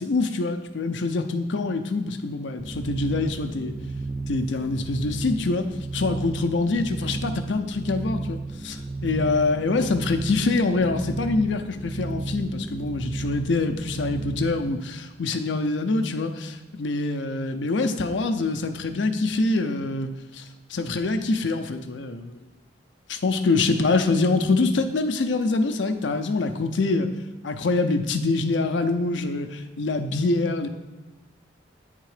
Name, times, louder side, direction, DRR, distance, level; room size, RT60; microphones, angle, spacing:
voice 1, 0.0-3.7 4.3-5.7 5.9-20.4 20.7-22.4 23.1-27.1 27.4-30.7, left 3 dB, 75° left, 7 dB, 0.6 m, -25 dB
sound 1, 2.6-14.7, right 3 dB, 20° right, 0.3 m, -33 dB
9.0 x 3.7 x 4.9 m, 1.1 s
head